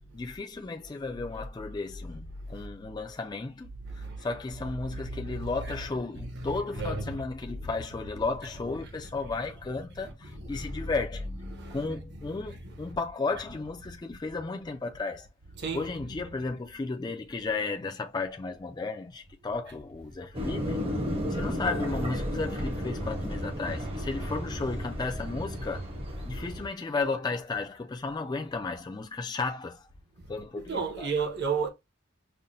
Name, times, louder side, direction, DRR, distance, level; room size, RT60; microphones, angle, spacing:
voice 1, 0.1-3.7 4.0-11.3 11.7-15.3 15.7-20.8 21.3-25.8 26.3-29.8 30.3-31.1, left 3 dB, 20° left, 0.3 m, -34 dB
voice 2, 3.8-4.3 4.9-5.5 6.3-7.2 7.5-7.6 10.0-10.9 11.5-11.9 12.3-12.4 12.6-13.0 15.6-15.8 30.6-31.7, right 4 dB, 55° right, 0.9 m, -34 dB
sound 1, 20.3-26.7, equal, 25° right, 0.7 m, -33 dB
5.4 x 2.1 x 2.6 m
head